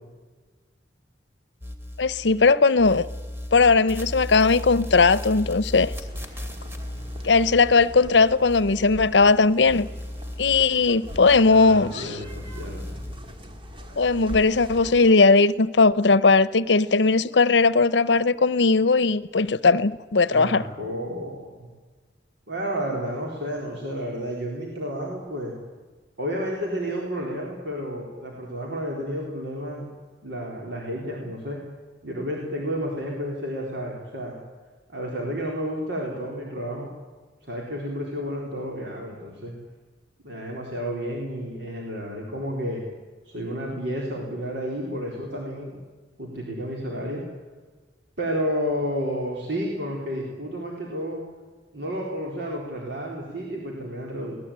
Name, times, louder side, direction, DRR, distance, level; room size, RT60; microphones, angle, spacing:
sound 1, 1.6-2.5 2.8-9.4 9.6-11.9 12.2-13.2, left 1 dB, 15° right, 2.6 m, -36 dB
voice 1, 2.0-3.1 3.5-5.9 7.2-9.9 10.4-12.2 14.0-20.6, left 4 dB, 75° left, 0.8 m, -18 dB
sound 2, 5.7-15.1, left 1 dB, 30° right, 2.3 m, -41 dB
voice 2, 11.5-13.0 20.3-21.7 22.5-25.5 26.2-29.9 30.2-31.6 32.0-34.4 34.9-36.9 37.4-39.5 40.2-42.8 43.3-45.8 46.2-47.2 48.2-51.2 51.7-54.4, equal, 75° right, 4.1 m, -31 dB
23.0 x 18.5 x 8.9 m
head